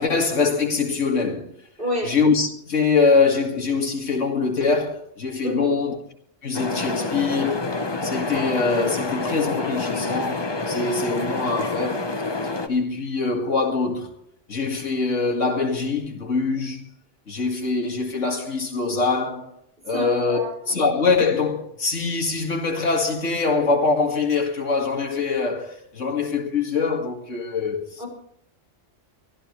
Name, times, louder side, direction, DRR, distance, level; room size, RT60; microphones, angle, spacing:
voice 1, 0.0-1.5 2.0-6.0 6.4-7.7 8.0-12.2 12.7-14.1 14.5-16.8 17.3-19.5 19.8-28.0, left 4 dB, 85° left, 2.5 m, -23 dB
voice 2, 1.8-2.1 5.4-5.8 19.9-20.5 28.0-28.1, equal, 45° right, 6.1 m, -29 dB
sound 1, 6.5-12.7, left 3 dB, 25° left, 1.0 m, -28 dB
24.0 x 14.0 x 3.2 m
omnidirectional pair, 1.2 m